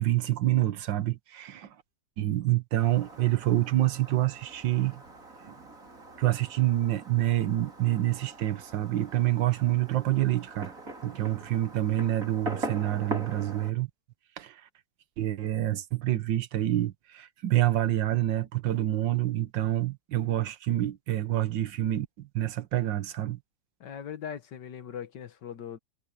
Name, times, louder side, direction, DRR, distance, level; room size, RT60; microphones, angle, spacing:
voice 1, 0.0-1.8 2.2-5.0 5.5-5.6 6.2-10.7 11.0-13.9 14.4-14.7 15.2-23.4, right 14 dB, 80° right, 1.6 m, -27 dB
Fireworks, 2.8-13.7, right 2 dB, 45° right, 4.3 m, -42 dB
voice 2, 23.8-25.8, left 8 dB, 70° left, 1.8 m, -40 dB
omnidirectional pair, 2.0 m